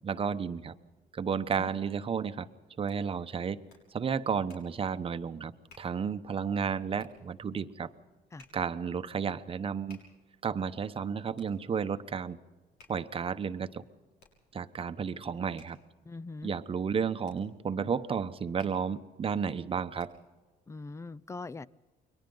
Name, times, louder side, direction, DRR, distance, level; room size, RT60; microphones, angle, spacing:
voice 1, 0.0-0.7 1.1-2.5 2.8-3.6 3.9-5.5 5.8-7.9 8.5-10.0 10.4-12.4 12.9-13.8 14.5-15.8 16.4-20.1, right 6 dB, 35° right, 1.0 m, -32 dB
Hands, 1.3-20.4, left 3 dB, 90° left, 6.8 m, -63 dB
voice 2, 16.1-16.5 20.7-21.7, left 3 dB, 15° left, 0.6 m, -42 dB
29.5 x 23.0 x 3.9 m
cardioid pair, 115°, 17 cm